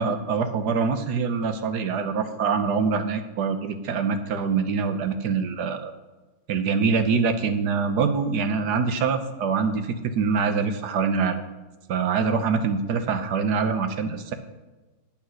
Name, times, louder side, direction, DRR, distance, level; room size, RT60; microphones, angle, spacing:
voice 1, 0.0-5.9 6.5-11.4 11.9-14.3, right 5 dB, 80° right, 8 dB, 1.5 m, -24 dB
8.7 x 8.7 x 6.3 m, 1.2 s
omnidirectional pair, 1.8 m